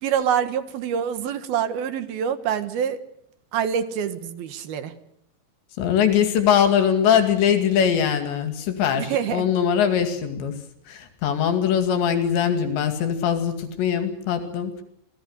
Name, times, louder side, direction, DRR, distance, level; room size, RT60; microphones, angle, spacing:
voice 1, 0.0-3.0 3.5-4.9 9.0-9.5, right 8 dB, 65° right, 10 dB, 3.1 m, -26 dB
voice 2, 5.8-10.6 10.9-14.8, left 8 dB, 80° left, 7 dB, 4.5 m, -21 dB
28.0 x 18.5 x 8.1 m, 0.73 s
omnidirectional pair, 5.1 m